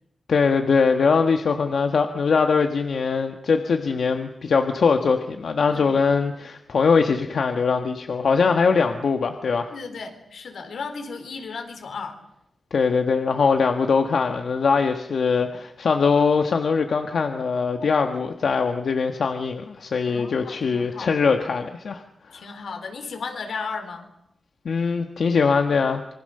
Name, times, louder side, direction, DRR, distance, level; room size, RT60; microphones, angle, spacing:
voice 1, 0.3-9.7 12.7-22.0 22.3-22.4 24.6-26.1, left 5 dB, 65° left, 5 dB, 1.5 m, -22 dB
voice 2, 9.7-12.2 17.8-18.0 20.1-21.3 22.3-24.1, left 5 dB, 85° left, 6 dB, 4.1 m, -35 dB
26.5 x 24.0 x 6.8 m, 0.80 s
wide cardioid pair, 165°, 0 cm